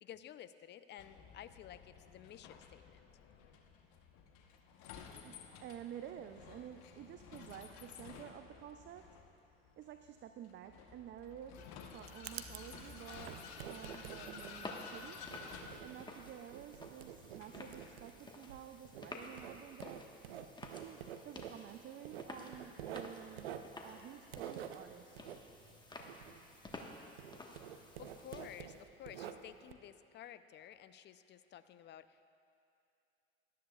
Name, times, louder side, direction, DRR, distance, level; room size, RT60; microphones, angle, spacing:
voice 1, 0.0-3.1 28.0-32.3, left 10 dB, 35° left, 13 dB, 0.5 m, -53 dB
Vehicle, 1.0-19.0, left 6 dB, 65° left, 1.1 m, -54 dB
voice 2, 5.1-9.3 9.8-15.4 15.8-20.1 20.8-23.5 23.8-25.2, right 10 dB, 40° right, 9 dB, 0.5 m, -51 dB
Writing, 11.6-26.9 27.2-29.7, right 9 dB, 85° right, 0.5 m, -49 dB
sound 1, 13.1-28.6, left 2 dB, 15° left, 1.3 m, -53 dB
17.5 x 12.5 x 2.4 m, 2.6 s
hypercardioid pair, 70°, 30 cm